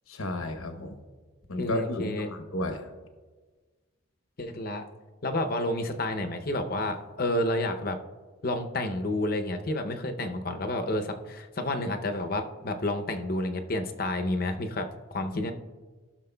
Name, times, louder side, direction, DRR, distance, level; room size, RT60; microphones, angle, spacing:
voice 1, 0.1-1.0 1.5-2.9, left 1 dB, 80° left, 6 dB, 0.9 m, -32 dB
voice 2, 1.6-2.3 4.4-4.8 5.2-8.0 8.4-15.5, left 1 dB, 45° left, 6 dB, 0.6 m, -30 dB
17.0 x 6.2 x 2.2 m, 1.4 s
head